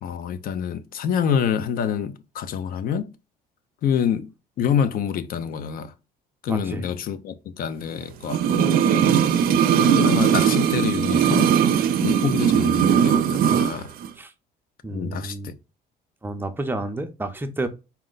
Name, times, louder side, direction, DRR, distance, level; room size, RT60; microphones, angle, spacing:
voice 1, 0.0-3.1 3.8-4.3 4.6-5.9 6.4-8.7 9.9-11.5 12.0-13.9 14.9-15.5, left 8 dB, 55° left, 0.6 m, -26 dB
voice 2, 6.5-6.9 14.2-14.3 14.8-15.5 16.2-17.7, right 2 dB, 10° right, 0.6 m, -30 dB
sound 1, 8.3-13.8 14.0-14.1, right 8 dB, 60° right, 0.5 m, -19 dB
4.3 x 2.1 x 3.8 m
cardioid pair, 110°, 17 cm